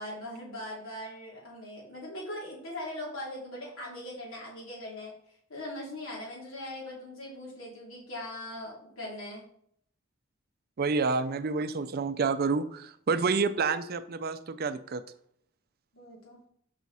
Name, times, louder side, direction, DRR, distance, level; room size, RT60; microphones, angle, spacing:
voice 1, 0.0-5.1 5.5-9.4 15.9-16.4, left 1 dB, 85° left, -4 dB, 3.0 m, -40 dB
voice 2, 10.8-15.0, right 4 dB, 50° right, 12 dB, 0.5 m, -28 dB
6.2 x 5.6 x 4.1 m, 0.67 s
head